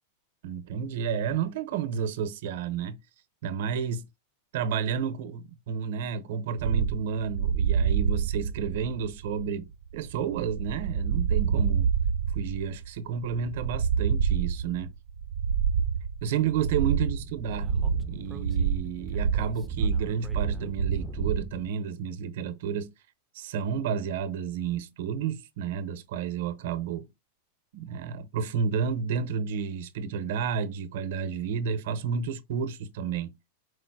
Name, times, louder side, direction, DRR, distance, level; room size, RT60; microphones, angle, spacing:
voice 1, 0.4-3.0 3.4-4.0 4.5-11.9 12.3-14.9 16.2-17.7 18.1-22.9 23.3-27.1 27.7-33.3, right 7 dB, 60° right, 0.7 m, -31 dB
sound 1, 6.6-21.5, right 7 dB, 85° right, 0.3 m, -27 dB
Speech / Wind, 17.2-21.7, right 1 dB, 5° right, 0.4 m, -42 dB
4.8 x 2.1 x 4.6 m
supercardioid pair, 165°, 0 cm